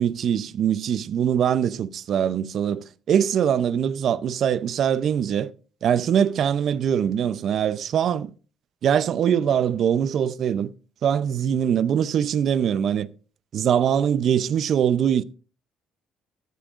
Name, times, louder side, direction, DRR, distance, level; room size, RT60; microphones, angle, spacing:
voice 1, 0.0-5.5 5.8-8.3 8.8-10.7 11.0-13.1 13.5-15.2, right 8 dB, 50° right, 0.5 m, -22 dB
14.0 x 8.8 x 2.5 m
cardioid pair, 140°, 0 cm